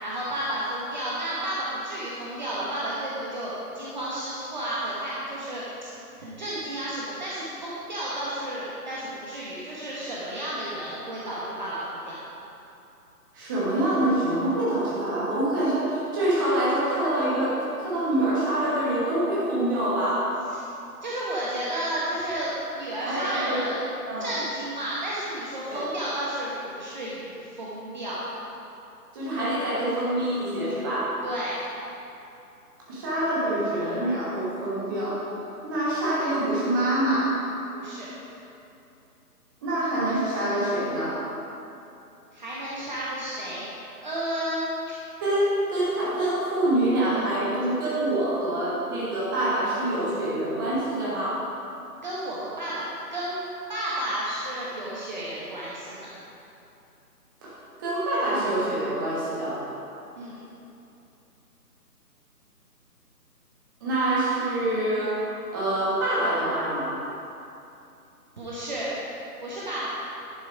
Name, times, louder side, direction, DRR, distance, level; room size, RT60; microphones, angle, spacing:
voice 1, 0.0-5.9 6.2-12.2 20.5-20.7 21.0-23.8 24.2-28.2 31.2-31.6 37.7-38.1 42.3-43.6 44.0-44.7 52.0-52.8 53.1-56.1 60.2-60.4 68.4-68.9 69.4-69.9, right 1 dB, 30° right, -7 dB, 1.1 m, -32 dB
voice 2, 13.3-20.3 23.0-23.6 24.1-24.3 25.7-25.9 29.1-31.1 32.9-35.3 35.6-37.3 39.6-41.2 45.2-51.4 57.4-57.5 57.8-59.6 63.8-67.0, right 1 dB, 15° right, -8 dB, 1.3 m, -26 dB
10.5 x 6.2 x 4.9 m, 2.8 s
figure-of-eight pair, 145°, 47 cm